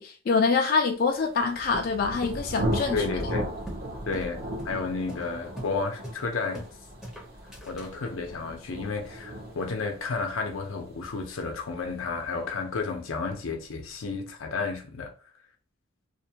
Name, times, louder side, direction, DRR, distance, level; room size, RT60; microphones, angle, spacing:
voice 1, 0.0-3.3, left 4 dB, 45° left, 0.3 m, -25 dB
Thunder, 1.2-12.8, right 1 dB, 50° right, 0.7 m, -36 dB
sound 1, 1.7-3.9 4.1-4.3 4.6-4.8 5.1-5.3 5.6-5.8 6.0-6.7 7.0-7.9, equal, ahead, 0.6 m, -40 dB
voice 2, 2.9-3.5 4.1-6.7 7.7-15.1, left 4 dB, 90° left, 0.6 m, -32 dB
2.5 x 2.2 x 2.8 m
head